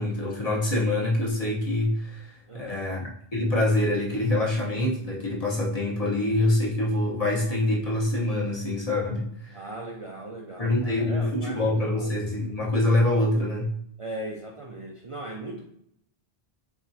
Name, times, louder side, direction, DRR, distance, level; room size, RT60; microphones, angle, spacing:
voice 1, 0.0-9.6 10.6-13.7, left 1 dB, 35° left, -4 dB, 1.1 m, -25 dB
voice 2, 2.5-2.8 9.5-12.2 14.0-15.6, right 1 dB, 40° right, -1 dB, 0.5 m, -38 dB
4.7 x 3.4 x 2.7 m, 0.71 s
omnidirectional pair, 1.1 m